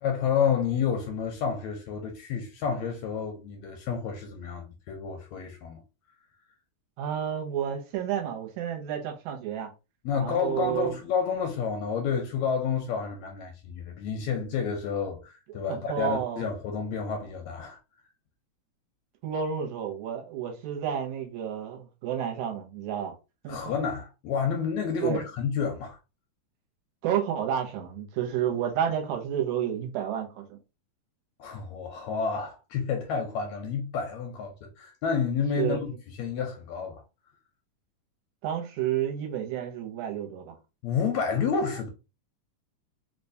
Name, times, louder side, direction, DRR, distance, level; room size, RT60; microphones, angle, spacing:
voice 1, 0.0-5.8 10.0-17.8 23.5-26.0 31.4-35.9 36.2-37.0 40.8-41.9, left 6 dB, 80° left, 1.7 m, -30 dB
voice 2, 7.0-9.7 10.2-10.9 15.7-16.5 19.2-23.1 23.4-23.8 25.0-25.2 27.0-30.6 35.6-35.8 38.4-40.6, right 9 dB, 75° right, 2.0 m, -30 dB
4.7 x 2.2 x 2.6 m
omnidirectional pair, 3.5 m